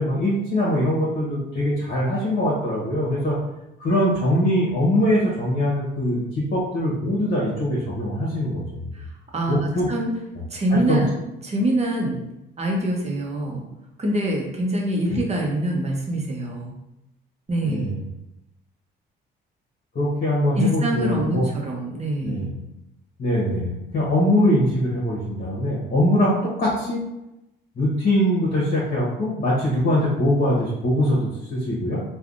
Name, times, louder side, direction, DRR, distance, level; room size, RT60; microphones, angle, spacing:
voice 1, 0.0-3.4 3.8-8.9 9.5-9.9 10.7-11.0 17.6-18.0 19.9-21.5 22.2-22.5 23.2-27.0 27.8-32.0, left 1 dB, 50° left, -6 dB, 1.1 m, -22 dB
voice 2, 9.3-10.1 10.5-12.2 12.6-13.6 14.0-16.7 17.5-17.9 20.6-22.5, right 1 dB, 35° right, -1 dB, 0.8 m, -25 dB
3.2 x 2.3 x 2.5 m, 0.87 s
cardioid pair, 90°, 20 cm